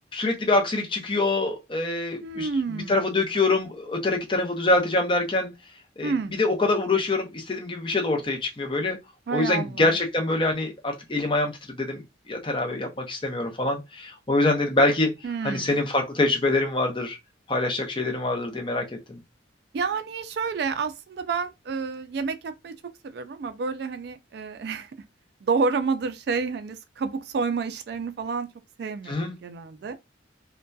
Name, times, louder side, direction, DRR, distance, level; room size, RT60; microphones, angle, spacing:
voice 1, 0.1-2.5 2.7-5.5 6.0-9.0 9.3-12.0 12.3-15.1 15.4-17.2 17.5-19.2 29.1-29.3, left 2 dB, 25° left, 0.6 m, -25 dB
voice 2, 2.2-3.1 6.0-6.4 9.3-10.0 15.2-15.7 19.7-22.7 23.0-24.9 25.4-28.5 28.8-30.0, right 4 dB, 55° right, 0.3 m, -29 dB
2.7 x 2.2 x 2.2 m
head